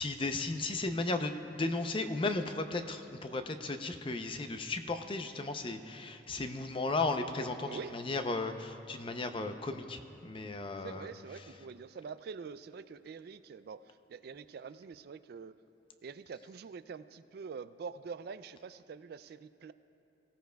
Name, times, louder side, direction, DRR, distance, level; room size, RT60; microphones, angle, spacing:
voice 1, 0.0-11.1, left 3 dB, 30° left, 7 dB, 0.6 m, -35 dB
voice 2, 7.6-8.0 10.8-15.6 16.0-19.7, right 5 dB, 55° right, 13 dB, 0.3 m, -45 dB
23.0 x 16.5 x 2.3 m, 2.8 s
head